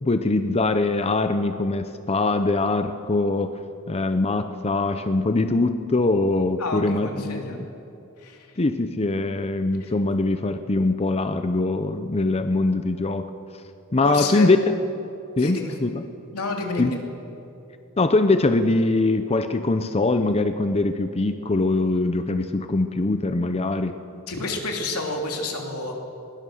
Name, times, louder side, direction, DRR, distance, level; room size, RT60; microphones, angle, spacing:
voice 1, 0.0-3.6 3.9-7.7 8.6-13.3 13.9-14.6 15.4-16.0 16.8-17.0 18.0-24.0, left 2 dB, 30° left, 9 dB, 0.6 m, -22 dB
voice 2, 6.6-7.6 8.2-8.5 14.0-14.5 15.4-15.7 16.3-17.0 24.3-26.0, left 3 dB, 90° left, 1 dB, 3.1 m, -29 dB
20.5 x 20.0 x 6.4 m, 2.7 s
head